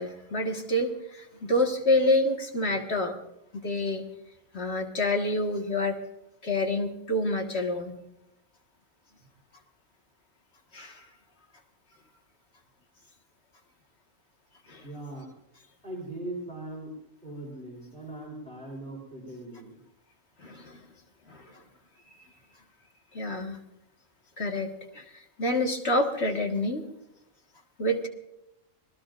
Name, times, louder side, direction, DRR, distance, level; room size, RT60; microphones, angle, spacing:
voice 1, 0.0-3.2 3.6-4.1 4.5-6.0 6.4-8.0 10.7-11.1 14.7-14.8 20.4-20.8 21.3-21.6 23.1-23.6 24.4-26.9 27.8-28.1, left 1 dB, 50° left, 2 dB, 2.0 m, -28 dB
voice 2, 14.8-15.3 15.8-16.9 17.2-19.8, right 1 dB, 5° left, -3 dB, 3.6 m, -40 dB
26.0 x 19.5 x 2.6 m, 0.88 s
omnidirectional pair, 1.4 m